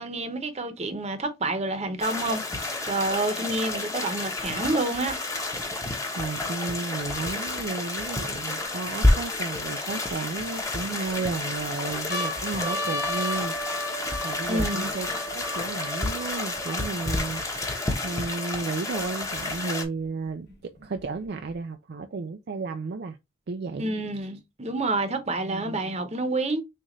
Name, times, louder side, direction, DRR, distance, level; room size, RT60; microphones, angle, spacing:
voice 1, 0.0-5.2 14.5-14.9 23.8-26.6, right 2 dB, 35° right, 0.9 m, -28 dB
sound 1, 2.0-19.8, left 2 dB, 15° left, 1.0 m, -30 dB
voice 2, 6.1-13.5 14.2-15.1 15.3-17.4 18.0-23.2 23.5-23.9 25.4-25.9, right 4 dB, 60° right, 0.4 m, -33 dB
sound 2, 8.6-9.6 10.3-11.1 11.6-11.7 11.9-17.6 18.3-18.4 18.5-19.5 20.5-21.5, left 1 dB, 60° left, 1.0 m, -35 dB
6.4 x 2.5 x 3.1 m
head